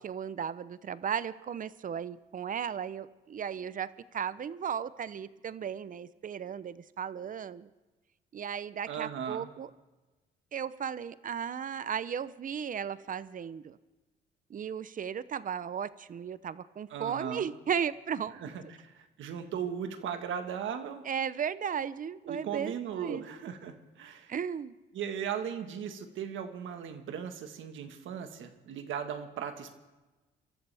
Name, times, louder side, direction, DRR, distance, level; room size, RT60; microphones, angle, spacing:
voice 1, 0.0-7.7 8.3-9.7 10.5-13.8 14.5-18.4 21.0-23.2 24.3-24.7, right 8 dB, 45° right, 16 dB, 0.6 m, -35 dB
voice 2, 8.9-9.5 16.9-17.5 18.4-21.0 22.2-24.3 24.9-29.8, right 8 dB, 80° right, 7 dB, 1.5 m, -37 dB
26.0 x 13.0 x 3.5 m, 1.1 s
cardioid pair, 90°, 20 cm